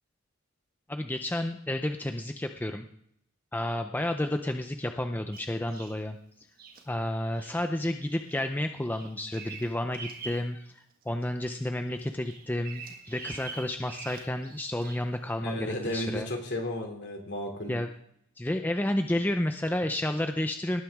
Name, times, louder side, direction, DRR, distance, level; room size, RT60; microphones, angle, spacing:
voice 1, 0.9-2.8 3.5-6.2 6.9-16.3 17.7-17.9 18.4-20.8, left 1 dB, 10° left, 6 dB, 0.5 m, -31 dB
Bird vocalization bird call bird song, 5.3-6.0 6.6-6.8 7.4-7.6 8.1-8.4 8.7-10.5 10.9-11.7 12.0-15.1 15.8-16.0, right 5 dB, 45° right, 1.7 m, -45 dB
voice 2, 15.4-17.8, left 1 dB, 55° left, 2 dB, 2.8 m, -33 dB
18.5 x 9.1 x 3.6 m, 0.70 s
head